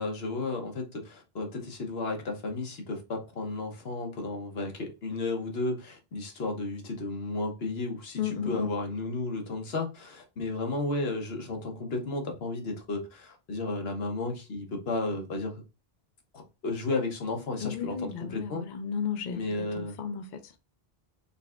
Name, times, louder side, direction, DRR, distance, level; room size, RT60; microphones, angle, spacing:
voice 1, 0.0-15.6 16.3-18.6 19.3-19.9, left 2 dB, 80° left, 1.2 m, -33 dB
voice 2, 8.2-8.7 17.6-19.4 19.8-20.3, left 7 dB, 55° left, 0.6 m, -33 dB
4.0 x 3.2 x 2.3 m
omnidirectional pair, 1.0 m